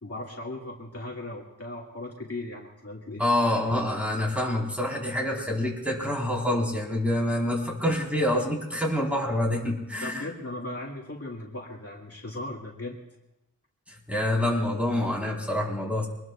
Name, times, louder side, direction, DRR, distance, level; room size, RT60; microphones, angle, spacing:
voice 1, 0.0-3.2 10.0-13.0, left 2 dB, 45° left, -3 dB, 2.3 m, -37 dB
voice 2, 3.2-10.3 14.1-16.1, left 1 dB, 5° right, -2 dB, 4.4 m, -26 dB
25.0 x 20.5 x 2.5 m, 0.94 s
wide cardioid pair, 70°, 33 cm